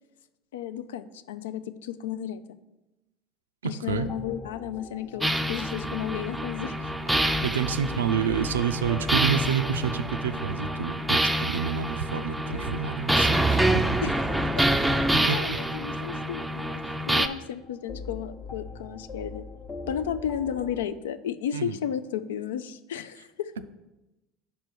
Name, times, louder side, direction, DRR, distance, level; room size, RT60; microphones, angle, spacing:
voice 1, 0.5-2.6 3.6-6.9 14.0-14.1 14.8-16.8 17.1-19.4 19.9-23.5, left 9 dB, 75° left, 13 dB, 0.3 m, -33 dB
voice 2, 3.6-4.1 7.1-13.8 15.0-15.6 21.5-21.8, right 8 dB, 85° right, 11 dB, 0.3 m, -29 dB
sound 1, 3.9-20.9, left 3 dB, 35° left, 0.8 m, -42 dB
sound 2, 5.2-17.3, right 1 dB, 5° right, 0.4 m, -27 dB
5.3 x 4.4 x 6.0 m, 1.0 s
hypercardioid pair, 70°, 0 cm